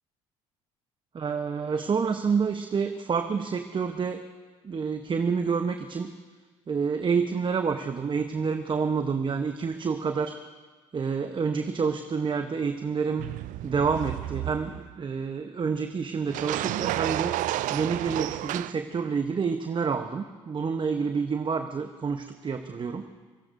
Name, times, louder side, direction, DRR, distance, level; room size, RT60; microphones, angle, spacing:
voice 1, 1.1-4.2 4.6-6.1 6.7-10.4 10.9-13.3 13.6-23.0, right 5 dB, 35° right, 7 dB, 1.0 m, -28 dB
sound 1, 13.2-14.9 16.3-18.7, right 15 dB, 60° right, 0.5 m, -31 dB
28.0 x 18.0 x 2.7 m, 1.4 s
hypercardioid pair, 60°, 15 cm